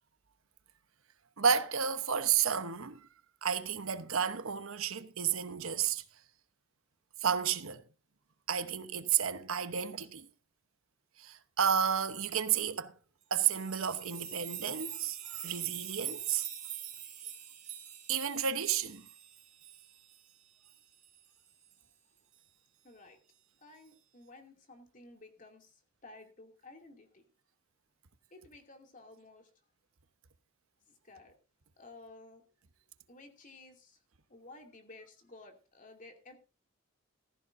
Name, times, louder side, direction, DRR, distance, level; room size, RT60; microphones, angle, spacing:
voice 1, 1.4-3.1 3.4-6.0 7.2-7.8 8.5-10.3 11.2-13.0 13.3-16.5 18.1-19.1, right 7 dB, 90° right, 1.0 m, -31 dB
sound 1, 13.5-20.2 20.6-20.7 21.0-21.2 21.7-21.8, right 10 dB, 35° right, 2.8 m, -44 dB
voice 2, 22.8-23.2 23.6-27.2 28.3-29.5 31.0-31.3 31.8-32.4 33.1-34.0 34.3-36.4, left 2 dB, 40° left, 2.7 m, -54 dB
15.0 x 14.5 x 2.7 m
head